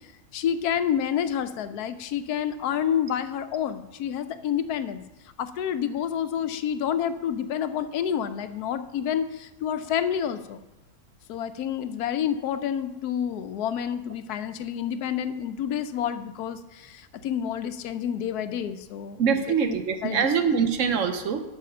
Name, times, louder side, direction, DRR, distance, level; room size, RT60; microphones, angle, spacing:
voice 1, 0.3-5.0 5.4-10.6 11.3-20.3, left 9 dB, 85° left, 11 dB, 1.1 m, -29 dB
voice 2, 19.2-21.4, right 6 dB, 60° right, 8 dB, 1.0 m, -24 dB
9.2 x 5.6 x 6.6 m, 1.0 s
omnidirectional pair, 1.6 m